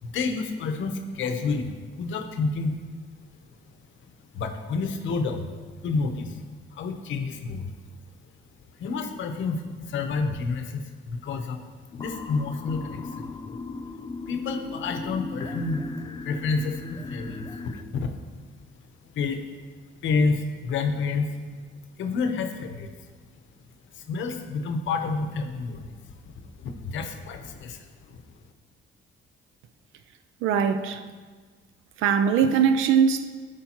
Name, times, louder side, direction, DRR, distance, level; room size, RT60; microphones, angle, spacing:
voice 1, 0.0-2.8 4.3-5.5 5.8-6.4 6.7-7.7 8.8-11.6 11.9-13.3 14.3-15.9 16.2-18.1 19.1-19.4 20.0-21.4 22.0-22.9 23.9-28.2, left 4 dB, 75° left, 5 dB, 0.8 m, -29 dB
sound 1, 11.9-17.8, left 3 dB, 25° left, 0.4 m, -37 dB
voice 2, 30.4-31.0 32.0-33.3, right 7 dB, 90° right, 9 dB, 0.5 m, -21 dB
13.5 x 5.1 x 2.9 m, 1.5 s
cardioid pair, 90°, 20 cm